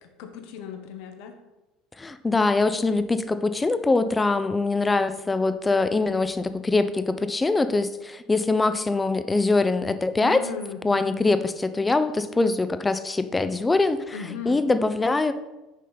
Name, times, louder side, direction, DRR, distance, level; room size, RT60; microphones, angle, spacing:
voice 1, 0.0-1.4 10.2-11.2 14.1-14.6, left 6 dB, 65° left, 6 dB, 0.9 m, -37 dB
voice 2, 2.0-10.4 10.8-14.2 14.5-15.3, left 3 dB, 20° left, 11 dB, 0.5 m, -23 dB
6.3 x 5.4 x 4.0 m, 1.0 s
hypercardioid pair, 70°, 0 cm